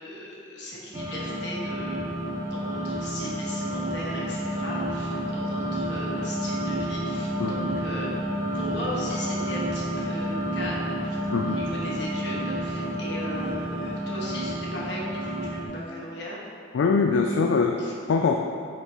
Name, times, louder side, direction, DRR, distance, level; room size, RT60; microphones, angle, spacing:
voice 1, 0.0-2.1 2.5-8.1 8.5-11.2 11.4-16.4 17.8-18.0, left 1 dB, 65° left, -5 dB, 1.3 m, -37 dB
sound 1, 0.9-15.7, right 1 dB, 20° right, 0.7 m, -30 dB
voice 2, 7.4-7.8 11.3-11.6 16.7-17.8 18.1-18.4, left 4 dB, 80° left, 3 dB, 0.3 m, -23 dB
5.9 x 4.6 x 4.0 m, 2.4 s
head